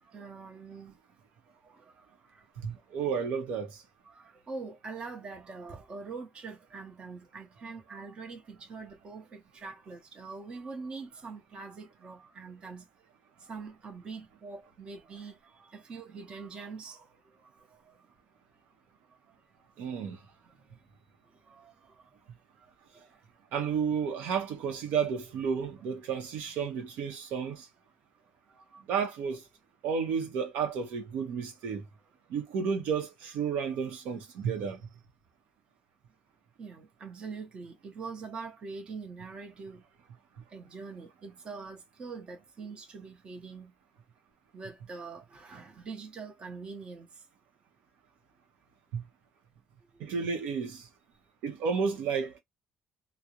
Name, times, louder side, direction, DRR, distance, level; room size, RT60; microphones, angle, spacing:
voice 1, 0.0-1.0 1.6-2.4 4.0-12.9 13.4-18.1 19.6-19.7 20.1-20.8 21.3-22.1 22.6-23.2 27.4-27.6 28.5-28.8 36.6-39.8 40.5-43.7 44.5-47.2 49.9-50.0, right 4 dB, 35° right, 0.8 m, -44 dB
voice 2, 2.6-3.8 19.8-20.2 23.5-27.7 28.9-29.4 29.8-31.8 32.3-34.8 48.9-49.0 50.0-50.9 51.4-52.4, right 6 dB, 85° right, 0.7 m, -32 dB
2.3 x 2.0 x 2.8 m
cardioid pair, 130°, 3 cm